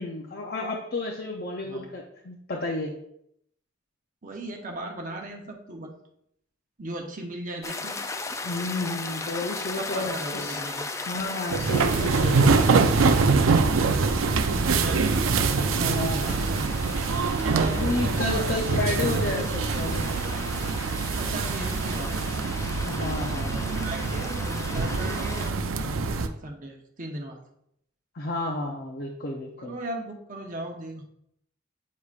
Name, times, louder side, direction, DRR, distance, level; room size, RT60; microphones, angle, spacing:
voice 1, 0.0-2.9 8.4-10.6 11.1-12.8 15.8-16.4 17.6-20.1 22.9-23.6 28.1-29.7, left 2 dB, 50° left, 0 dB, 0.6 m, -31 dB
voice 2, 4.2-5.9 6.8-8.0 9.8-10.9 14.2-16.7 17.5-18.5 21.1-22.3 23.5-27.4 29.6-31.0, right 1 dB, 40° right, 1 dB, 0.8 m, -37 dB
sound 1, 7.6-25.5, left 3 dB, 15° left, 0.3 m, -37 dB
sound 2, 11.5-26.3, right 4 dB, 85° right, 0.5 m, -24 dB
8.4 x 4.9 x 2.4 m, 0.74 s
head